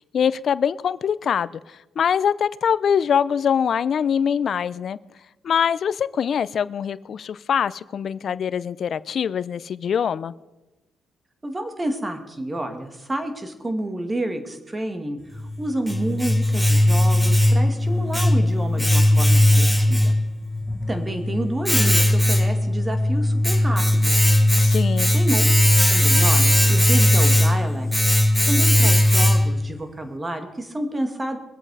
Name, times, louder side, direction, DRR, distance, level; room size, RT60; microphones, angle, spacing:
voice 1, 0.1-1.5 2.0-5.0 5.4-10.3 24.6-25.1, left 7 dB, 55° left, 0.5 m, -23 dB
voice 2, 11.4-20.1 20.9-24.3 25.1-25.4 25.9-31.4, right 1 dB, 20° right, 2.1 m, -29 dB
Domestic sounds home sounds, 15.3-29.7, left 1 dB, ahead, 1.4 m, -18 dB
23.0 x 7.8 x 4.9 m
cardioid pair, 90°, 0 cm